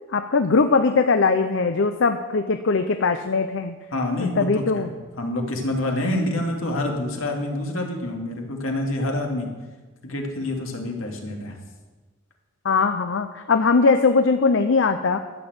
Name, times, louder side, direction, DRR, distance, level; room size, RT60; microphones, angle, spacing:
voice 1, 0.1-3.8 4.4-4.9 6.1-6.2 12.6-15.2, left 4 dB, 60° left, 8 dB, 0.6 m, -20 dB
voice 2, 3.9-4.9 5.2-9.5 10.0-11.6, left 1 dB, 75° left, 1 dB, 2.2 m, -27 dB
12.0 x 7.0 x 7.9 m, 1.3 s
head